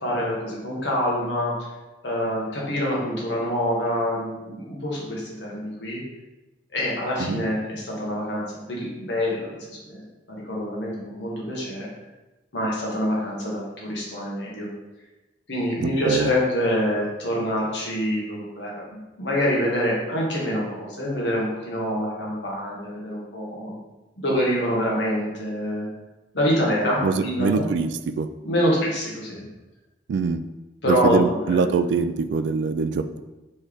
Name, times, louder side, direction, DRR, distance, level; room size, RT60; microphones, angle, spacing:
voice 1, 0.0-1.5 2.0-6.0 6.7-10.0 10.4-11.9 12.5-14.7 15.5-23.7 24.2-25.9 26.3-27.7 28.4-29.4 30.8-31.7, equal, 80° left, -4 dB, 1.3 m, -26 dB
voice 2, 15.8-16.3 27.0-27.9 28.2-28.3 30.1-30.4 30.8-33.2, right 5 dB, 80° right, 11 dB, 0.3 m, -23 dB
4.3 x 3.2 x 3.5 m, 1.1 s
head